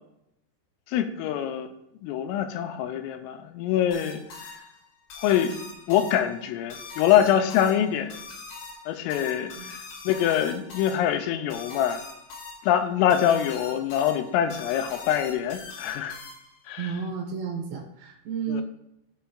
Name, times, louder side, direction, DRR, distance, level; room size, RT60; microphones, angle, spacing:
voice 1, 0.9-1.7 2.0-4.5 5.2-5.6 5.9-8.1 8.9-12.0 12.6-16.2 16.7-16.9 18.5-18.6, left 10 dB, 85° left, 7 dB, 3.2 m, -24 dB
sound 1, 3.9-16.7, left 4 dB, 65° left, 4.5 m, -43 dB
voice 2, 16.8-18.6, right 6 dB, 75° right, 3 dB, 2.9 m, -32 dB
16.0 x 5.7 x 2.3 m, 0.81 s
omnidirectional pair, 5.9 m